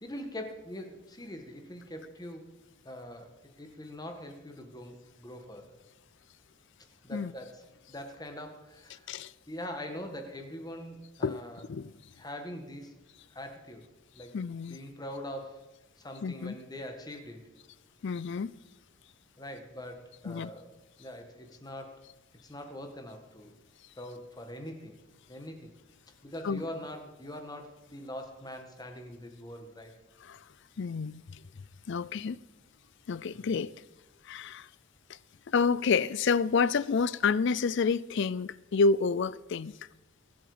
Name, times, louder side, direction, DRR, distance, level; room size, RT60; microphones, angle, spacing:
voice 1, 0.0-2.5 2.8-3.3 3.6-5.8 7.0-9.1 9.5-11.6 12.2-12.9 13.3-13.8 14.2-14.4 14.7-15.7 16.0-17.5 19.4-22.1 22.4-23.6 23.9-25.0 25.3-25.7 26.2-29.9 33.3-33.7, left 1 dB, 20° left, 1.7 m, -43 dB
voice 2, 14.3-14.8 16.2-16.5 18.0-18.5 20.3-20.5 26.4-26.6 30.2-30.4 30.8-31.4 31.9-32.4 33.1-33.7 34.2-34.7 35.1-35.2 35.5-39.8, left 5 dB, 55° left, 0.4 m, -29 dB
23.0 x 8.0 x 5.0 m
head